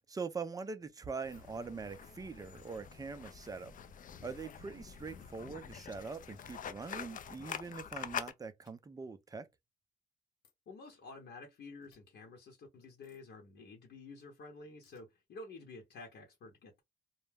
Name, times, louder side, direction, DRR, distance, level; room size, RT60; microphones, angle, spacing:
voice 1, 0.0-3.7 4.2-9.5, right 4 dB, 20° right, 0.4 m, -43 dB
sound 1, 1.2-1.4 2.5-2.8 4.5-4.6 6.3-6.5 7.7-7.9 8.6-8.7 10.4-10.5 11.8-12.0 13.0-13.2 14.8-15.0, left 6 dB, 90° left, 1.2 m, -69 dB
sound 2, 1.2-8.3, left 8 dB, 45° left, 0.4 m, -46 dB
voice 2, 10.7-16.8, left 3 dB, 60° left, 0.9 m, -51 dB
2.3 x 2.1 x 3.2 m
cardioid pair, 90°, 20 cm